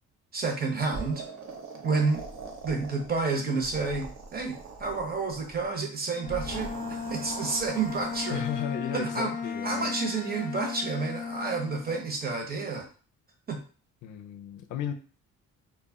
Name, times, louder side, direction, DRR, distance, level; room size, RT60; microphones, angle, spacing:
voice 1, 0.3-1.2 1.8-2.2 2.6-8.4 8.9-9.3 9.6-12.9 13.5-13.6, right 4 dB, 30° right, 2 dB, 0.8 m, -30 dB
sound 1, 0.9-3.2 3.5-5.7 6.2-8.5, right 4 dB, 65° right, 0.7 m, -42 dB
Bowed string instrument, 6.1-12.2, left 5 dB, 30° left, 0.4 m, -36 dB
voice 2, 8.3-9.9 14.0-14.9, left 10 dB, 90° left, 7 dB, 0.5 m, -35 dB
2.2 x 2.0 x 3.5 m, 0.39 s
cardioid pair, 90°, 30 cm